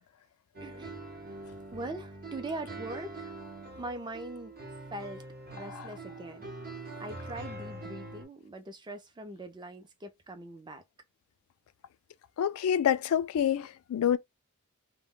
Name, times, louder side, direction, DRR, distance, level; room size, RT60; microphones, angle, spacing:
sound 1, 0.5-8.2, right 2 dB, 45° right, 0.7 m, -44 dB
voice 1, 0.6-1.0 1.7-3.4 3.7-4.5 4.9-5.2 5.5-6.5 7.0-10.8, right 2 dB, 20° right, 0.4 m, -41 dB
voice 2, 5.6-5.9 12.4-14.2, left 9 dB, 70° left, 0.3 m, -27 dB
2.1 x 2.1 x 3.6 m
head